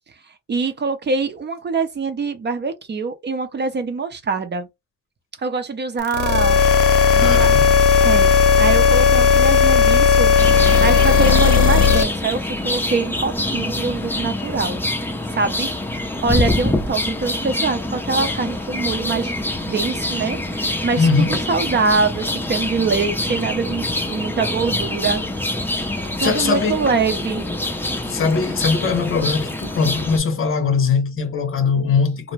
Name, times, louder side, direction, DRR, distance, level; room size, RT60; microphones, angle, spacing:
voice 1, 0.5-4.7 5.4-6.6 7.1-7.5 8.0-14.8 15.3-15.7 16.2-25.5 26.2-27.5, right 4 dB, 35° right, 0.6 m, -24 dB
sound 1, 6.0-12.0, left 6 dB, 80° left, 0.6 m, -14 dB
voice 2, 7.1-7.8 21.0-21.4 25.8-25.9 26.2-26.9 28.0-32.3, left 5 dB, 45° left, 0.7 m, -21 dB
sound 2, 10.4-30.2, left 1 dB, 5° left, 0.5 m, -25 dB
2.5 x 2.2 x 3.1 m
cardioid pair, 90°, 30 cm